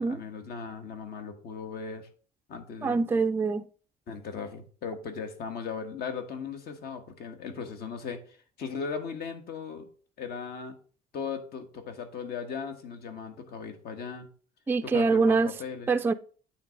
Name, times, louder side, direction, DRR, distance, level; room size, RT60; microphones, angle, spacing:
voice 1, 0.0-2.1 2.5-3.0 4.1-9.8 10.2-10.8 11.1-14.3 14.8-15.9, left 6 dB, 65° left, 1.4 m, -38 dB
voice 2, 2.8-3.6 14.7-15.5 15.9-16.1, right 4 dB, 15° right, 0.3 m, -24 dB
9.1 x 3.4 x 5.1 m
cardioid pair, 110°, 17 cm